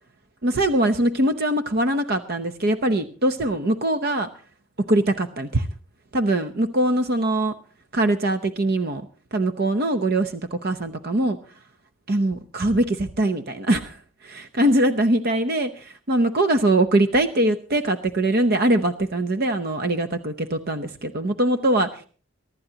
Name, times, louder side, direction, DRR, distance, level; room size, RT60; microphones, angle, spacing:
voice 1, 0.4-4.3 4.9-5.7 6.1-7.5 7.9-11.4 12.1-22.1, right 1 dB, 50° right, 9 dB, 0.8 m, -22 dB
24.0 x 12.5 x 2.9 m, 0.39 s
head